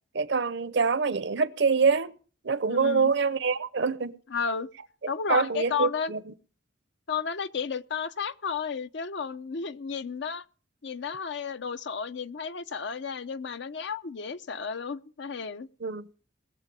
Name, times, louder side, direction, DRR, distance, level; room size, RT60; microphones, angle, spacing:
voice 1, 0.1-2.1 2.4-4.2 5.3-6.3 15.8-16.1, right 5 dB, 60° right, 0.7 m, -25 dB
voice 2, 2.7-3.1 4.3-4.7 5.1-6.1 7.1-10.4 10.8-15.7, left 6 dB, 60° left, 0.6 m, -32 dB
20.0 x 7.4 x 5.4 m
head